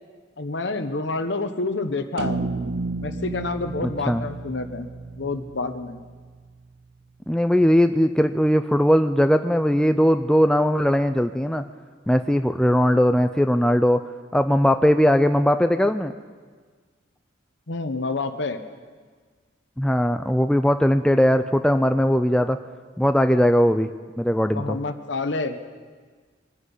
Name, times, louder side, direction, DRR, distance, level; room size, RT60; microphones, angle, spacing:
voice 1, 0.4-2.4 3.0-4.9 5.2-6.0 17.7-18.6 24.5-25.6, left 3 dB, 65° left, 8 dB, 1.0 m, -28 dB
sound 1, 2.2-6.7, right 3 dB, 60° right, 0.5 m, -32 dB
voice 2, 3.8-4.2 7.3-11.6 12.1-14.0 14.3-16.1 19.8-22.6 23.0-23.9 24.2-24.8, equal, 5° left, 8 dB, 0.3 m, -19 dB
24.0 x 9.7 x 5.5 m, 1.5 s
head